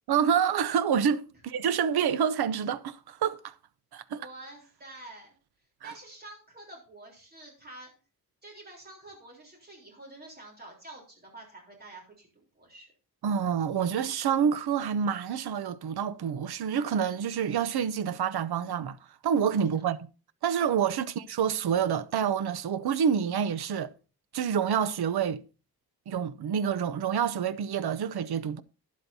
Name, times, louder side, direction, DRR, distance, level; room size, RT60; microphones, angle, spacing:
voice 1, 0.1-3.5 3.9-4.3 5.8-5.9 13.2-19.0 19.2-20.0 20.4-23.9 24.3-25.4 26.1-28.6, right 8 dB, 80° right, 0.7 m, -27 dB
voice 2, 4.1-5.3 5.8-7.9 8.4-12.9, right 2 dB, 25° right, 3.6 m, -48 dB
12.5 x 10.5 x 2.7 m
wide cardioid pair, 180°, 37 cm